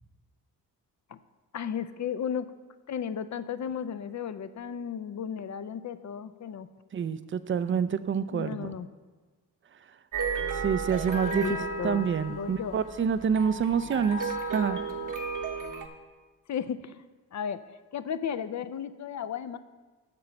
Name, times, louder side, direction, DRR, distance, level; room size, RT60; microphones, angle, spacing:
voice 1, 1.5-2.5 2.9-6.7 8.3-8.9 11.3-12.8 16.5-17.0 17.3-17.6 17.9-19.6, left 8 dB, 40° left, 13 dB, 0.5 m, -34 dB
voice 2, 6.9-8.7 10.5-11.4 11.8-14.8, right 7 dB, 30° right, 13 dB, 0.4 m, -27 dB
sound 1, 10.1-15.9, right 4 dB, 45° right, 1.0 m, -34 dB
6.4 x 6.0 x 5.9 m, 1.3 s
supercardioid pair, 45°, 43 cm